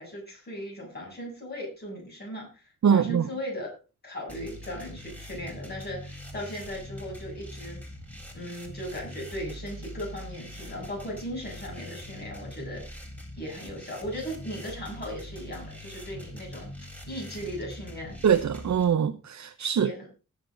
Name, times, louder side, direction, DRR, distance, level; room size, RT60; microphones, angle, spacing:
voice 1, 0.0-3.7 4.0-7.8 8.3-12.8 13.3-16.7 17.1-18.2 19.8-20.1, equal, 35° left, 7.8 m, -37 dB
voice 2, 2.8-3.2 18.2-19.9, right 8 dB, 70° right, 0.8 m, -23 dB
sound 1, 4.3-18.9, left 1 dB, 5° left, 3.8 m, -43 dB
20.0 x 7.0 x 3.9 m
wide cardioid pair, 155°, 29 cm